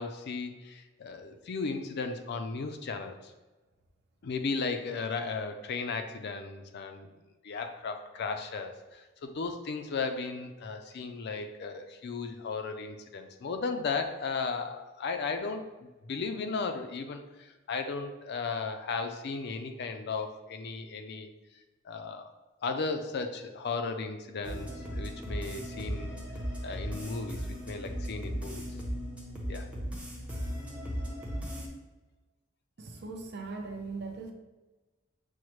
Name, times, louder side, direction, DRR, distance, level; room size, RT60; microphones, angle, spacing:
voice 1, 0.0-3.3 4.2-7.1 7.4-21.3 21.8-22.3 22.6-26.2 26.6-28.6 29.5-29.7, left 4 dB, 55° left, 7 dB, 0.4 m, -35 dB
sound 1, 24.4-31.7, equal, 5° right, 0.7 m, -37 dB
voice 2, 32.8-34.3, right 3 dB, 55° right, 3 dB, 0.5 m, -39 dB
6.3 x 2.1 x 3.0 m, 1.2 s
head